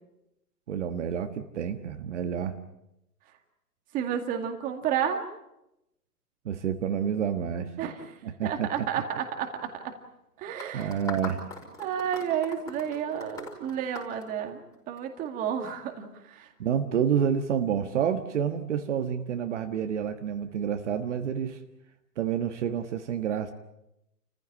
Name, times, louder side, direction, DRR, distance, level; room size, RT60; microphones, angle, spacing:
voice 1, 0.7-2.6 6.4-7.7 8.2-8.7 10.7-11.4 16.6-21.6 22.2-23.5, right 8 dB, 45° right, 6 dB, 1.5 m, -29 dB
voice 2, 3.9-5.2 7.8-8.0 8.4-10.0 10.4-11.0 11.8-14.6 14.9-16.5, right 8 dB, 15° right, 4 dB, 2.1 m, -31 dB
sound 1, 10.6-15.0, left 3 dB, 5° left, 5.2 m, -40 dB
30.0 x 15.0 x 8.6 m, 0.88 s
hypercardioid pair, 150°, 48 cm